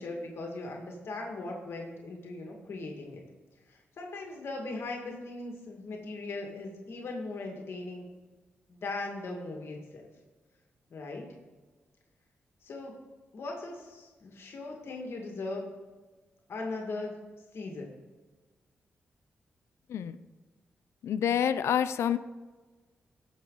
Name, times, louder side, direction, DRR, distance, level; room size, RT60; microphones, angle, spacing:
voice 1, 0.0-3.2 3.7-8.1 8.7-10.1 10.9-11.3 12.6-12.9 13.3-15.7 16.5-17.1 17.5-18.0, left 2 dB, 65° left, 1 dB, 1.9 m, -39 dB
voice 2, 21.0-22.2, left 9 dB, 90° left, 13 dB, 0.4 m, -27 dB
16.0 x 6.5 x 3.9 m, 1.3 s
cardioid pair, 85°, 4 cm